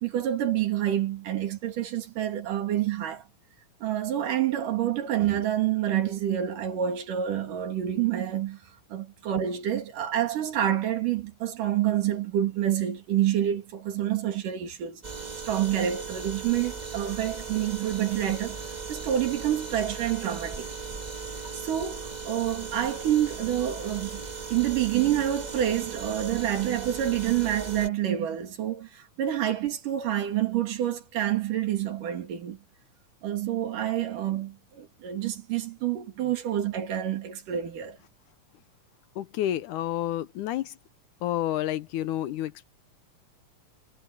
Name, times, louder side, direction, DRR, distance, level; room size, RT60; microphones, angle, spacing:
voice 1, 0.0-3.3 3.8-8.6 8.9-15.0 15.5-18.6 18.9-20.7 21.5-24.2 24.5-32.6 33.2-38.0, right 11 dB, 70° right, 3.9 m, -28 dB
sound 1, 15.0-27.9, right 4 dB, 40° right, 0.5 m, -38 dB
voice 2, 39.2-40.7 41.2-42.7, left 12 dB, 75° left, 2.1 m, -29 dB
omnidirectional pair, 3.9 m